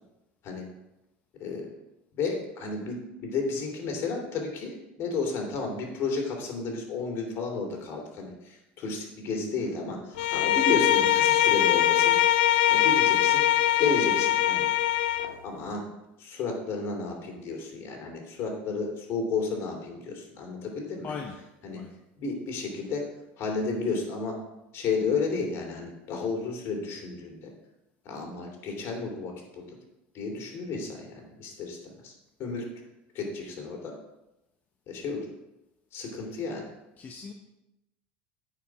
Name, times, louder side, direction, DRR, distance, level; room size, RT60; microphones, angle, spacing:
voice 1, 2.1-12.1 12.7-13.4 13.8-14.7 15.2-15.9 16.2-21.1 21.6-21.8 22.2-23.0 23.4-24.3 24.7-27.5 28.0-29.6 30.1-32.1 32.4-32.6 33.1-33.9 34.9-35.3 35.9-36.6, left 4 dB, 50° left, 1 dB, 2.8 m, -32 dB
Bowed string instrument, 10.2-15.4, left 13 dB, 90° left, 0.4 m, -22 dB
voice 2, 21.0-21.3 21.8-21.9 37.0-37.3, left 5 dB, 35° left, 2 dB, 0.9 m, -38 dB
9.1 x 4.9 x 6.0 m, 0.93 s
supercardioid pair, 115°, 6 cm